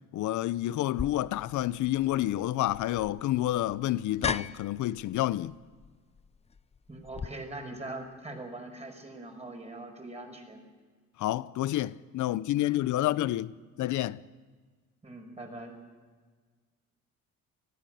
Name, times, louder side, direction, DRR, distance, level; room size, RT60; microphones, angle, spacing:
voice 1, 0.1-5.6 11.2-13.5 13.8-14.2, left 14 dB, 75° left, 0.7 m, -29 dB
sound 1, 1.0-7.3, left 5 dB, 20° left, 0.5 m, -39 dB
voice 2, 6.9-10.6 13.0-13.2 15.0-15.8, right 2 dB, 20° right, 5.6 m, -42 dB
20.0 x 15.0 x 9.2 m
cardioid pair, 90°, 30 cm